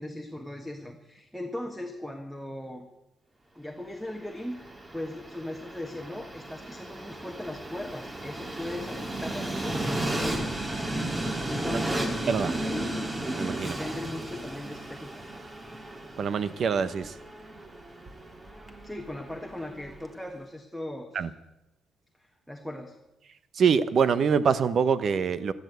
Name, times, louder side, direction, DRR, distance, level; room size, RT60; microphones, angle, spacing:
voice 1, 0.0-2.9 3.5-10.5 11.1-12.2 12.6-13.1 13.6-15.1 18.8-21.3 22.2-23.0, left 1 dB, ahead, 5 dB, 1.6 m, -38 dB
Train, 4.1-20.2, right 1 dB, 20° right, 2.3 m, -34 dB
voice 2, 13.4-13.7 16.2-17.1 21.1-21.3 23.5-25.5, right 6 dB, 55° right, 14 dB, 1.0 m, -24 dB
14.0 x 12.5 x 8.2 m, 0.95 s
cardioid pair, 90°, 0 cm